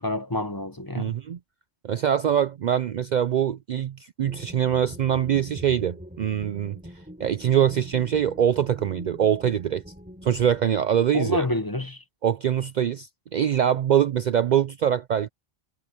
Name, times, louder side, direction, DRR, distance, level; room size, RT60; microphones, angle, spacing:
voice 1, 0.0-1.1 11.1-12.0, left 1 dB, 20° left, 1.0 m, -28 dB
voice 2, 1.0-1.4 1.8-6.8 7.2-9.8 10.2-11.5 12.2-15.3, right 9 dB, 55° right, 0.5 m, -23 dB
sound 1, 4.2-10.7, equal, 10° right, 6.8 m, -44 dB
omnidirectional pair, 1.0 m